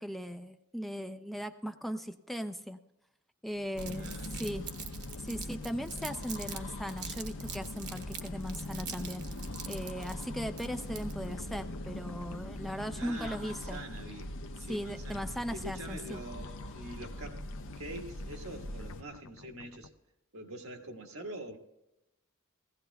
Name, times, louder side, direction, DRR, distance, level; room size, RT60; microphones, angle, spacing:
voice 1, 0.0-2.8 3.4-4.7 5.2-9.2 9.7-13.8 14.7-16.2, equal, ahead, 0.4 m, -38 dB
sound 1, 3.5-19.9, left 4 dB, 85° left, 0.6 m, -54 dB
sound 2, 3.8-19.0, left 1 dB, 60° left, 0.8 m, -42 dB
Crumpling crinkling, 3.8-6.6 6.9-11.3, right 8 dB, 55° right, 1.1 m, -44 dB
voice 2, 4.0-4.3 12.9-15.2 15.5-17.4 17.8-19.9 20.3-21.6, right 1 dB, 80° right, 1.6 m, -44 dB
18.5 x 16.0 x 2.3 m
head